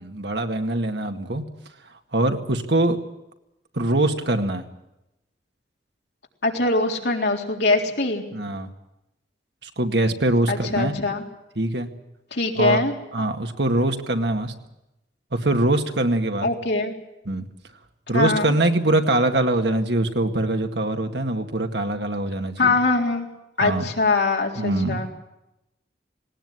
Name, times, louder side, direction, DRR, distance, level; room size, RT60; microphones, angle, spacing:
voice 1, 0.0-1.4 2.1-3.0 3.7-4.7 8.3-8.7 9.6-10.9 11.6-11.9 12.6-12.8 13.1-14.5 15.3-16.5 17.3-17.4 18.1-22.8 23.6-23.9 24.6-25.0, right 1 dB, 75° right, 5 dB, 2.1 m, -23 dB
voice 2, 6.4-8.2 10.5-11.2 12.3-12.9 16.4-16.9 18.1-18.5 22.6-23.3 23.6-25.1, left 3 dB, 75° left, 1 dB, 3.8 m, -22 dB
19.0 x 19.0 x 9.8 m, 0.90 s
head